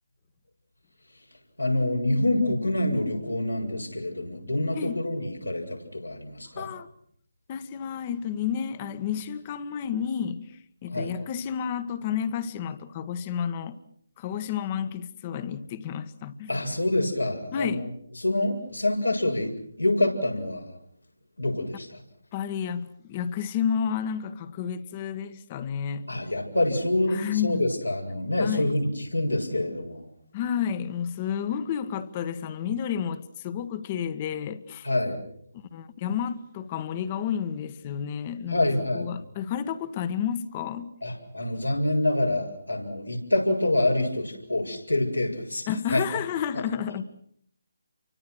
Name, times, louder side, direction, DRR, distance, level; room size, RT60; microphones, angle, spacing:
voice 1, 1.6-6.7 10.9-11.1 16.5-17.8 18.2-19.5 19.8-20.7 21.4-22.0 26.1-30.0 34.8-35.2 38.5-39.1 41.0-46.0, left 1 dB, 90° left, 7.6 m, -26 dB
voice 2, 6.6-6.9 7.5-13.8 14.2-16.5 17.5-17.8 22.3-26.1 27.1-27.7 28.4-28.7 30.3-34.9 35.5-40.9 45.7-47.0, left 8 dB, 25° left, 1.6 m, -31 dB
30.0 x 24.5 x 6.3 m
figure-of-eight pair, 150°, 0 cm